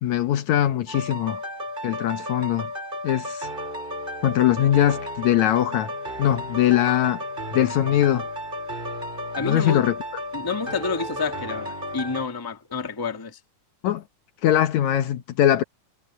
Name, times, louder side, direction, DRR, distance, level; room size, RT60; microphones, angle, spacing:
voice 1, 0.0-1.4 1.8-2.7 3.0-3.5 4.2-5.9 6.2-7.2 7.5-8.3 9.4-10.0 13.8-14.0 14.4-15.6, left 12 dB, 70° left, 2.2 m, -21 dB
sound 1, 0.9-12.3, equal, 15° right, 5.3 m, -33 dB
voice 2, 9.3-9.8 10.3-13.4, left 4 dB, 10° left, 1.1 m, -29 dB
omnidirectional pair, 3.6 m